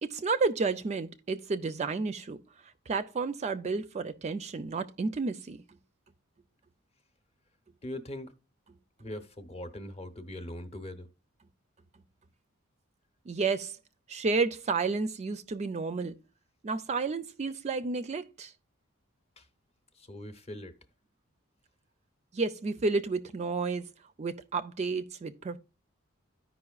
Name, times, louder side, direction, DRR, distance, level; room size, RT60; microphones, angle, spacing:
voice 1, 0.0-2.4 2.9-5.6 13.3-13.8 14.1-16.2 16.6-18.5 22.3-23.9 24.2-25.6, right 4 dB, 35° right, 0.4 m, -31 dB
voice 2, 7.8-8.3 9.0-11.1 19.4-19.5 19.9-20.8, left 1 dB, 30° left, 0.8 m, -41 dB
14.0 x 5.1 x 2.3 m
head